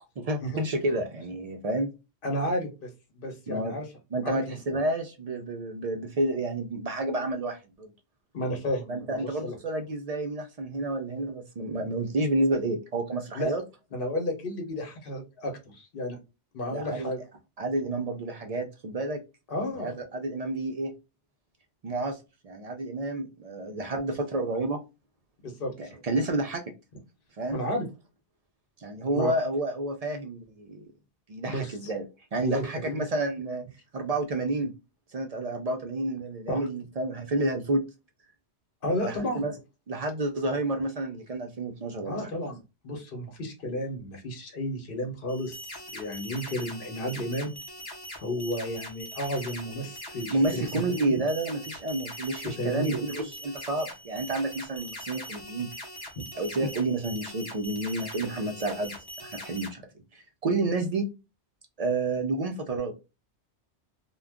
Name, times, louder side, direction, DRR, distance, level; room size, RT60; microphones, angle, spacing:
voice 1, 0.2-1.9 3.5-3.7 4.1-7.9 8.9-13.6 16.7-17.1 17.6-19.2 19.6-20.9 21.8-22.2 22.4-24.8 25.8-26.6 27.4-27.6 28.8-30.8 31.3-32.1 32.3-33.6 33.9-34.7 35.1-37.8 39.0-39.5 39.9-42.3 50.3-55.7 56.3-58.9 59.2-59.8 60.1-61.1 61.8-62.9, right 2 dB, 60° right, 0.4 m, -30 dB
voice 2, 2.2-3.8 4.2-4.8 8.3-9.6 13.3-13.5 13.9-16.2 16.5-17.2 19.5-19.9 25.4-25.9 27.5-27.9 29.1-29.4 31.5-31.9 32.4-33.0 36.5-36.7 38.8-39.5 42.0-42.6 42.8-47.5 48.2-50.8 52.4-52.9, left 1 dB, 50° left, 1.0 m, -32 dB
sound 1, 45.3-59.7, equal, 25° left, 0.7 m, -42 dB
2.4 x 2.2 x 3.4 m
omnidirectional pair, 1.2 m